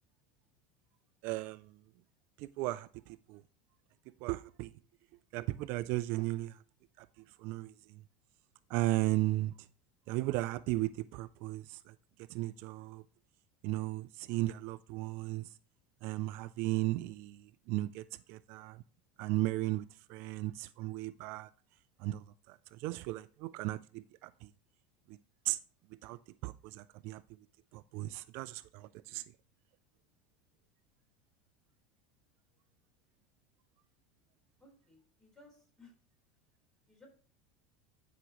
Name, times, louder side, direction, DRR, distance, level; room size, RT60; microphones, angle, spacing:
voice 1, 1.2-1.6 2.6-2.9 3.3-3.4 4.2-4.7 5.3-6.5 7.4-7.7 8.7-9.5 10.1-11.8 12.3-13.0 13.6-15.4 16.0-17.4 17.7-18.0 18.3-18.8 19.2-19.8 20.1-21.5 22.0-22.2 22.8-24.0 25.5-25.6 26.0-26.2 26.4-27.2 27.9-29.2, right 18 dB, 60° right, 0.3 m, -35 dB
voice 2, 34.6-35.9 36.9-37.1, left 2 dB, 10° left, 4.1 m, -60 dB
11.5 x 6.0 x 3.0 m
supercardioid pair, 135°, 4 cm